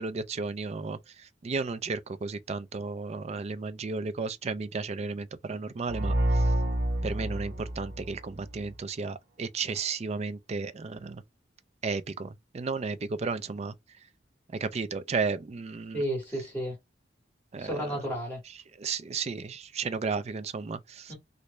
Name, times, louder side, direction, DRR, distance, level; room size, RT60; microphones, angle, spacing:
voice 1, 0.0-6.5 7.0-11.2 11.8-13.7 14.5-16.0 17.5-17.8 18.8-21.1, right 4 dB, 35° right, 0.4 m, -33 dB
sound 1, 5.8-8.7, right 1 dB, 70° right, 0.9 m, -28 dB
voice 2, 15.9-16.8 17.6-18.4 21.1-21.2, equal, 10° left, 1.9 m, -32 dB
3.0 x 2.6 x 3.2 m
head